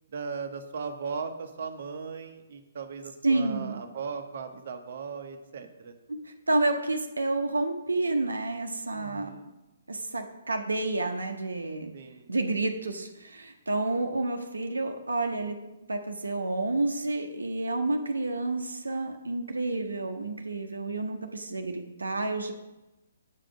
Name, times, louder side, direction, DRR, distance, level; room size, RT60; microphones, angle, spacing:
voice 1, 0.1-5.9 8.9-9.5 11.9-12.3, right 5 dB, 50° right, 5 dB, 0.9 m, -38 dB
voice 2, 3.2-3.8 6.1-9.5 9.9-11.9 12.3-15.6 15.9-22.5, right 2 dB, 75° right, 5 dB, 0.8 m, -29 dB
8.5 x 5.1 x 6.2 m, 1.0 s
figure-of-eight pair, 130°, 0 cm